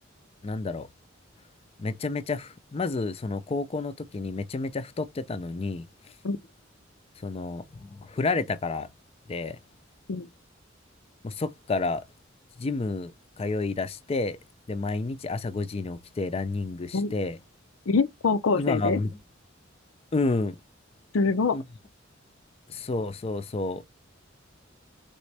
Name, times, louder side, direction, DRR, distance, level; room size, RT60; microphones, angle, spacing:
voice 1, 0.4-0.9 1.8-6.1 7.2-8.9 9.3-9.6 11.2-12.0 12.6-13.1 13.4-14.4 14.7-17.4 18.6-19.1 20.1-20.6 21.5-21.6 22.7-23.8, left 3 dB, 30° left, 0.4 m, -30 dB
voice 2, 17.9-19.0 21.1-21.6, left 4 dB, 90° left, 0.5 m, -24 dB
4.1 x 3.6 x 3.3 m
head